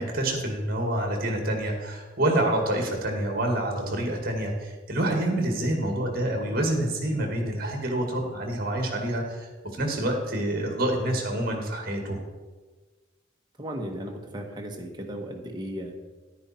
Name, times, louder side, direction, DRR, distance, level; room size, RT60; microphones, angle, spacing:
voice 1, 0.0-12.2, right 1 dB, 45° right, 3 dB, 1.9 m, -27 dB
voice 2, 13.6-15.9, equal, 20° right, 1 dB, 1.2 m, -35 dB
10.5 x 9.5 x 4.3 m, 1.3 s
head